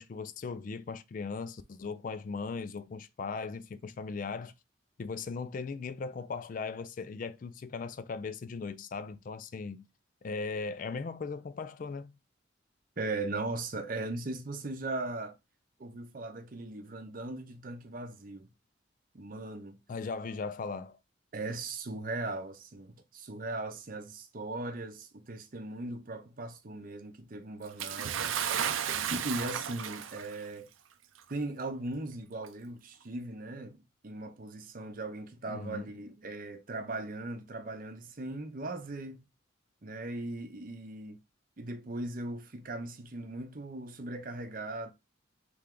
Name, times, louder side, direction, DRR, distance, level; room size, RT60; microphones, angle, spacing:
voice 1, 0.0-4.5 5.0-9.9 10.2-12.1 19.9-21.0 35.5-35.8, left 4 dB, 45° left, 0.3 m, -38 dB
voice 2, 13.0-15.3 15.8-18.5 19.1-19.8 21.3-28.4 29.1-30.7 31.3-39.3 39.8-41.2 41.6-44.9, right 2 dB, 45° right, 0.7 m, -38 dB
Bathtub (filling or washing) / Splash splatter, 27.8-30.4 31.3-31.4 32.4-32.5, right 9 dB, 90° right, 0.5 m, -33 dB
3.4 x 3.4 x 3.6 m
head